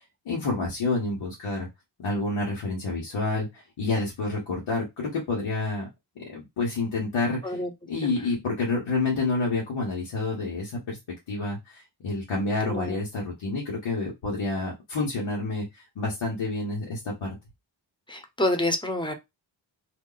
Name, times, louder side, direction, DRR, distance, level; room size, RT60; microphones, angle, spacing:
voice 1, 0.2-1.7 2.0-5.9 6.2-7.6 7.9-11.0 11.3-17.3, left 3 dB, 85° left, 1.3 m, -29 dB
voice 2, 12.6-13.0 18.1-19.1, left 1 dB, 10° left, 0.9 m, -28 dB
2.7 x 2.1 x 3.9 m
cardioid pair, 45°, 47 cm